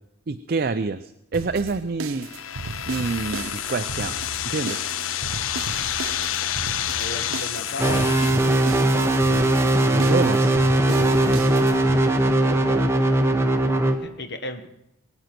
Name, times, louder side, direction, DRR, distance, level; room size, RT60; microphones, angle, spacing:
voice 1, 0.3-2.3 2.9-4.2 4.4-4.8 9.9-10.5 12.4-13.0, right 4 dB, 45° right, 9 dB, 0.5 m, -27 dB
sound 1, 1.3-12.0, right 4 dB, 90° right, 0.7 m, -35 dB
sound 2, 2.2-8.3, left 11 dB, 75° left, 0.5 m, -29 dB
voice 2, 6.9-8.1 10.8-11.3 14.0-14.7, left 1 dB, 55° left, 7 dB, 1.2 m, -35 dB
sound 3, 7.8-13.9, right 1 dB, 15° right, 1.0 m, -19 dB
21.5 x 9.1 x 5.9 m, 0.82 s
head